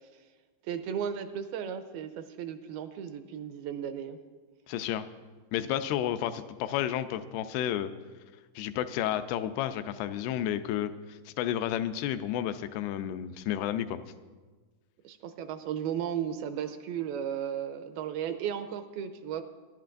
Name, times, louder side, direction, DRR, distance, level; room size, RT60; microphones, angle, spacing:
voice 1, 0.7-4.2 15.0-19.4, right 8 dB, 80° right, 8 dB, 2.5 m, -35 dB
voice 2, 4.7-5.1 5.5-7.9 8.6-14.0, left 11 dB, 85° left, 10 dB, 2.6 m, -31 dB
22.5 x 11.5 x 2.5 m, 1.4 s
omnidirectional pair, 4.6 m